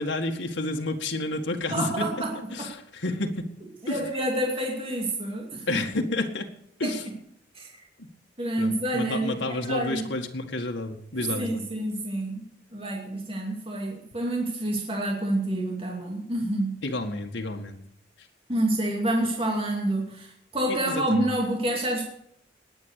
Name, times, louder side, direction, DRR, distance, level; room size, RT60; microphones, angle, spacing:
voice 1, 0.0-2.0 2.5-3.5 3.9-4.0 5.7-6.5 6.8-7.0 8.0-8.1 8.6-11.6 16.8-17.8 20.7-21.3, left 2 dB, 90° left, 2 dB, 1.9 m, -30 dB
voice 2, 1.7-2.7 3.8-5.8 6.8-7.0 7.5-7.7 8.4-10.1 11.1-16.8 18.5-22.0, right 1 dB, 30° right, -1 dB, 2.7 m, -28 dB
19.5 x 8.6 x 6.7 m, 0.70 s
head